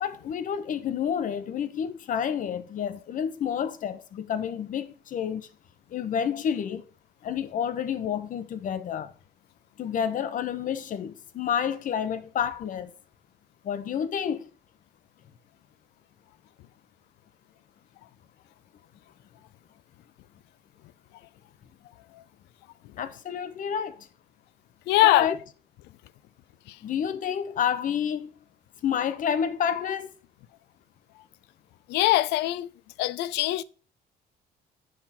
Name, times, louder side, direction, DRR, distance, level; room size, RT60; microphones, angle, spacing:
voice 1, 0.0-5.5 5.9-6.8 7.2-9.1 9.8-12.9 13.6-14.5 23.0-24.1 25.0-25.4 26.8-28.3 28.8-30.1, left 8 dB, 50° left, 0.9 m, -29 dB
voice 2, 24.9-25.3 26.7-26.8 31.9-32.7 33.0-33.6, left 15 dB, 90° left, 0.5 m, -22 dB
7.6 x 5.7 x 4.2 m
cardioid pair, 110°, 17 cm